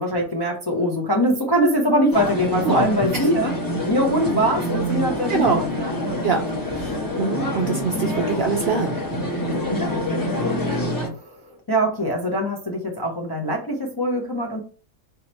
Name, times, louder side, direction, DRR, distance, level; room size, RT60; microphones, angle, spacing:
voice 1, 0.0-3.6 3.8-6.2 9.7-10.5 11.1-14.6, equal, 35° left, 0 dB, 0.4 m, -23 dB
sound 1, 2.1-11.1, left 1 dB, 15° left, 0.8 m, -26 dB
voice 2, 5.3-5.6 6.2-6.5 6.7-8.9 9.5-9.8, right 4 dB, 65° right, 3 dB, 0.6 m, -24 dB
3.5 x 2.9 x 4.2 m, 0.37 s
omnidirectional pair, 1.5 m